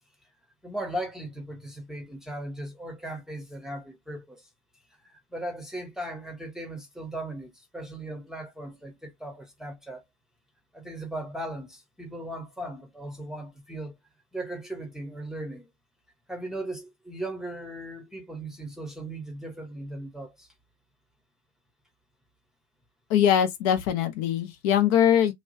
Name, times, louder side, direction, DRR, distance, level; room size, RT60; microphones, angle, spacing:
voice 1, 0.6-4.5 5.0-10.0 10.7-14.0 14.3-15.7 16.3-20.5, right 1 dB, ahead, 0.8 m, -37 dB
voice 2, 23.1-25.3, left 9 dB, 45° left, 0.7 m, -22 dB
3.0 x 2.3 x 2.6 m
hypercardioid pair, 105°, 34 cm